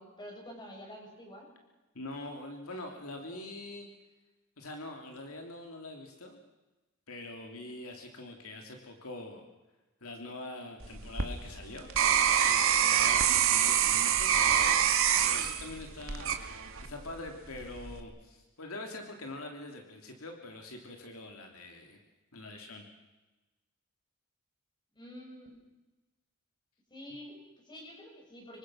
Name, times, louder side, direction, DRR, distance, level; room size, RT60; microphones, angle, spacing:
voice 1, 0.0-1.5 24.9-25.6 26.9-28.6, equal, 20° left, 0 dB, 7.6 m, -48 dB
voice 2, 1.9-3.9 4.6-6.4 7.1-9.4 10.0-11.9 12.4-22.0 22.3-22.8, left 2 dB, 70° left, 3 dB, 3.1 m, -44 dB
sound 1, 10.8-17.0 17.5-18.0, right 9 dB, 65° right, 2.1 m, -26 dB
27.0 x 24.0 x 6.4 m, 1.1 s
head